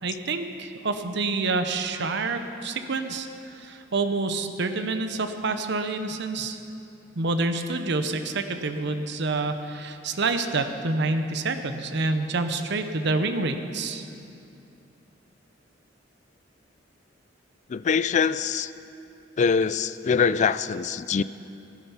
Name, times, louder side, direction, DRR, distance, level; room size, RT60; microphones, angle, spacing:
voice 1, 0.0-6.6 7.2-14.1, right 3 dB, 65° right, 8 dB, 0.8 m, -27 dB
voice 2, 17.7-18.7 19.4-21.2, left 6 dB, 40° left, 16 dB, 0.3 m, -23 dB
16.5 x 10.5 x 5.7 m, 2.7 s
head